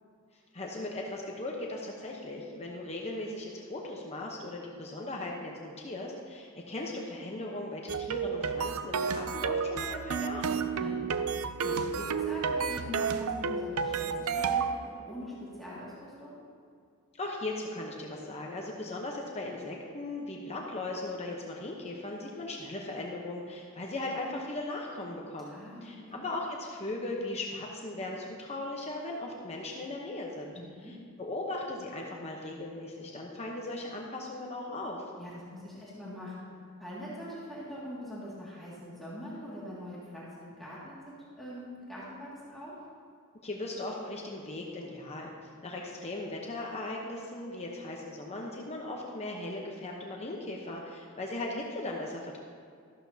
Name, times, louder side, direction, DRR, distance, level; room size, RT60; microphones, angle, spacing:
voice 1, 0.5-10.7 17.2-30.5 30.8-35.0 43.4-45.3 45.6-52.4, left 2 dB, 30° left, -1 dB, 0.9 m, -38 dB
sound 1, 7.9-14.8, right 6 dB, 70° right, 0.5 m, -31 dB
voice 2, 11.6-16.4 25.5-26.2 30.5-31.0 35.2-36.4 36.8-42.7, equal, ahead, -9 dB, 2.2 m, -43 dB
14.0 x 12.0 x 2.8 m, 2.3 s
head